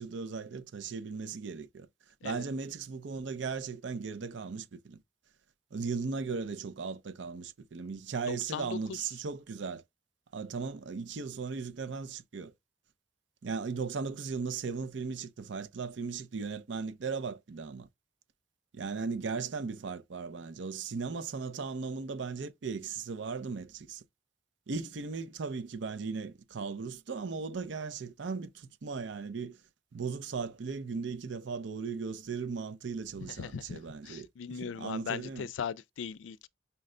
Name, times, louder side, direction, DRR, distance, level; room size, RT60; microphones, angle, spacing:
voice 1, 0.0-1.9 2.2-5.0 5.7-9.8 10.3-12.5 13.4-17.9 18.7-24.0 24.7-29.6 29.9-35.5, right 5 dB, 70° right, 0.5 m, -37 dB
voice 2, 8.3-8.8 33.2-36.5, left 7 dB, 90° left, 0.4 m, -39 dB
5.6 x 2.1 x 3.7 m
head